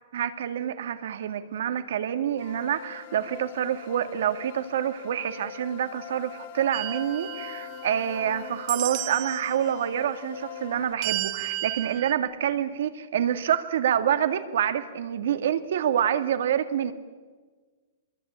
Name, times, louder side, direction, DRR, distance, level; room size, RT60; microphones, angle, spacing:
voice 1, 0.1-16.9, right 9 dB, 60° right, 9 dB, 2.1 m, -27 dB
sound 1, 2.4-10.9, left 10 dB, 45° left, 2.1 m, -42 dB
sound 2, 6.7-8.2 8.7-9.5 11.0-12.1, right 20 dB, 30° right, 0.8 m, -33 dB
26.0 x 22.0 x 8.8 m, 1.4 s
hypercardioid pair, 175°, 0 cm